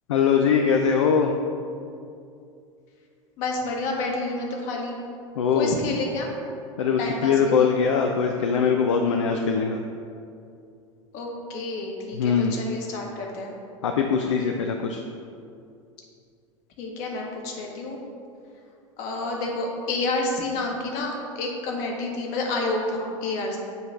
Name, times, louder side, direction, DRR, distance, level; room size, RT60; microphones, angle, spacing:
voice 1, 0.1-1.3 5.4-5.7 6.8-9.8 12.2-12.6 13.8-15.0, left 6 dB, 65° left, 3 dB, 0.4 m, -22 dB
voice 2, 3.4-5.0 5.5-6.3 7.0-7.7 11.1-13.5 16.8-18.0 19.0-23.6, left 2 dB, 45° left, 0 dB, 1.2 m, -29 dB
7.8 x 3.1 x 5.1 m, 2.5 s
figure-of-eight pair, 80°, 17 cm